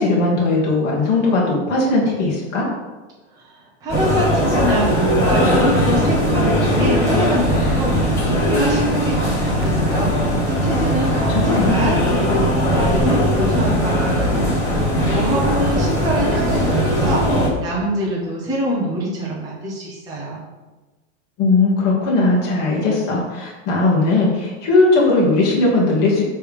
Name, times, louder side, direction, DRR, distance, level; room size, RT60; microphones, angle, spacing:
voice 1, 0.0-2.7 11.3-11.7 21.4-26.2, left 3 dB, 30° left, -4 dB, 1.9 m, -18 dB
voice 2, 3.4-20.4, equal, 10° right, -5 dB, 0.9 m, -25 dB
sound 1, 3.9-17.5, equal, 10° left, 2.4 m, -19 dB
7.6 x 3.5 x 5.1 m, 1.2 s
supercardioid pair, 175°, 35 cm